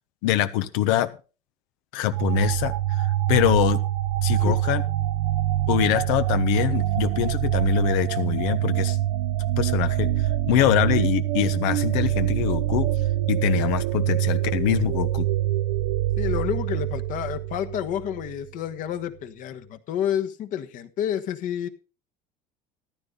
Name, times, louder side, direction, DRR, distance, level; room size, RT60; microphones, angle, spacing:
voice 1, 0.2-1.1 1.9-2.7 3.3-3.8 4.2-4.8 5.7-9.0 9.6-10.1 10.5-12.9 13.3-15.3, left 14 dB, 90° left, 11 dB, 1.2 m, -24 dB
sound 1, 2.1-18.5, right 13 dB, 90° right, 0.6 m, -25 dB
voice 2, 16.2-21.7, left 10 dB, 55° left, 8 dB, 1.3 m, -29 dB
14.0 x 12.0 x 4.0 m, 0.34 s
cardioid pair, 145°, 17 cm